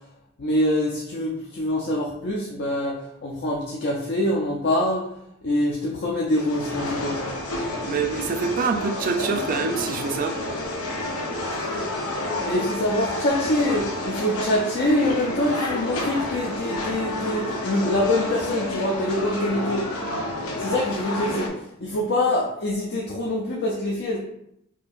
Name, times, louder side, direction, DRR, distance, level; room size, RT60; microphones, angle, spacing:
voice 1, 0.4-5.1 5.4-7.2 11.6-11.8 12.4-24.2, left 1 dB, 50° left, -3 dB, 0.5 m, -25 dB
sound 1, 6.3-21.5, left 1 dB, 80° left, 0.7 m, -30 dB
voice 2, 7.8-10.3, right 5 dB, 40° right, 7 dB, 0.3 m, -25 dB
4.4 x 2.7 x 2.4 m, 0.77 s
head